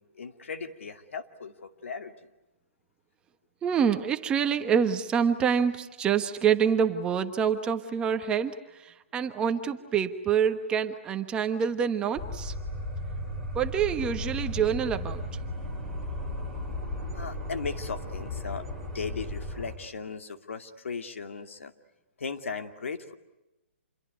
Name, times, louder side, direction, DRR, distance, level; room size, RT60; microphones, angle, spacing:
voice 1, 0.0-2.3 13.3-13.4 17.1-21.7 22.2-23.1, left 5 dB, 80° left, 7 dB, 2.5 m, -37 dB
voice 2, 3.6-12.5 13.5-15.2, right 7 dB, 15° right, 8 dB, 1.2 m, -26 dB
sound 1, 12.2-19.7, left 1 dB, ahead, 4.8 m, -35 dB
28.0 x 22.5 x 9.5 m, 0.99 s
hypercardioid pair, 155°, 7 cm